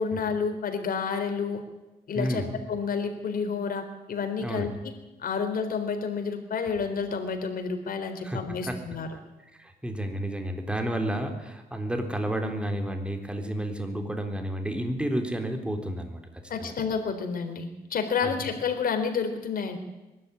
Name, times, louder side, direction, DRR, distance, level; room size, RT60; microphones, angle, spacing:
voice 1, 0.0-1.6 2.1-4.7 5.2-9.1 16.5-19.8, left 5 dB, 65° left, 6 dB, 3.8 m, -30 dB
voice 2, 2.1-2.5 4.4-4.7 8.2-8.8 9.5-16.2 16.6-16.7 18.2-18.3, right 1 dB, 5° right, 5 dB, 3.7 m, -31 dB
22.0 x 13.0 x 9.9 m, 1.0 s
cardioid pair, 90°, 16 cm